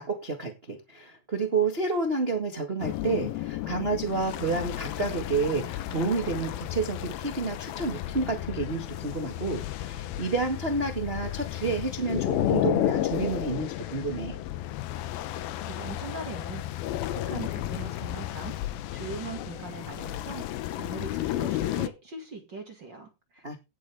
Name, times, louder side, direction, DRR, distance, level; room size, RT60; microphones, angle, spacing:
voice 1, 0.0-14.4 23.4-23.6, right 3 dB, 75° right, 0.5 m, -30 dB
sound 1, 2.8-21.9, left 14 dB, 75° left, 2.6 m, -32 dB
voice 2, 15.7-18.6 18.9-23.6, right 3 dB, 35° right, 2.2 m, -41 dB
17.0 x 7.8 x 3.5 m
omnidirectional pair, 4.5 m